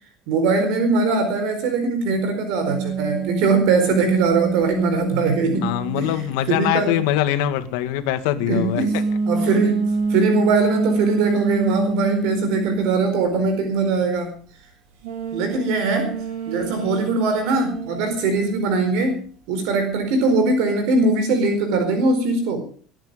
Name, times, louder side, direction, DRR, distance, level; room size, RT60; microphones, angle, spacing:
voice 1, 0.3-5.7 6.0-6.1 6.5-7.0 8.5-9.0 9.3-14.3 15.3-19.2 19.5-22.7, right 3 dB, 65° right, 7 dB, 4.4 m, -21 dB
sound 1, 2.6-6.4 8.7-13.1 15.0-18.8, right 4 dB, 85° right, 5.2 m, -26 dB
voice 2, 5.5-8.8, left 12 dB, 85° left, 9 dB, 2.1 m, -23 dB
21.0 x 10.5 x 5.4 m, 0.43 s
cardioid pair, 175°, 0 cm